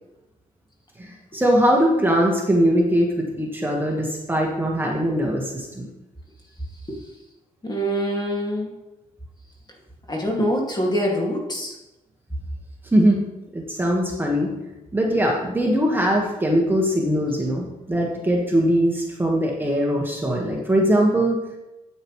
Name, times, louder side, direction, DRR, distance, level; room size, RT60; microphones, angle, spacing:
voice 1, 1.0-5.9 12.9-13.2 13.5-14.5 14.9-21.4, equal, 15° right, -1 dB, 1.6 m, -21 dB
voice 2, 7.6-8.7 10.1-11.7, equal, 30° left, -1 dB, 2.3 m, -24 dB
8.9 x 8.8 x 3.2 m, 0.99 s
cardioid pair, 95°, 15 cm